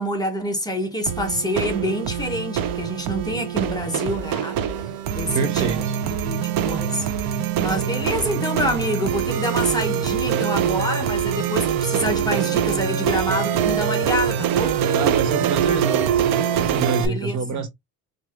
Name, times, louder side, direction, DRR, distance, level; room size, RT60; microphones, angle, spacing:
voice 1, 0.0-4.6 5.1-5.7 6.1-14.8 17.0-17.6, equal, 10° left, 1.0 m, -27 dB
sound 1, 1.1-17.1, right 8 dB, 65° right, 0.7 m, -23 dB
voice 2, 5.3-6.0 14.9-16.1 16.5-17.7, right 5 dB, 50° right, 1.1 m, -26 dB
4.5 x 2.6 x 2.4 m
cardioid pair, 145°, 38 cm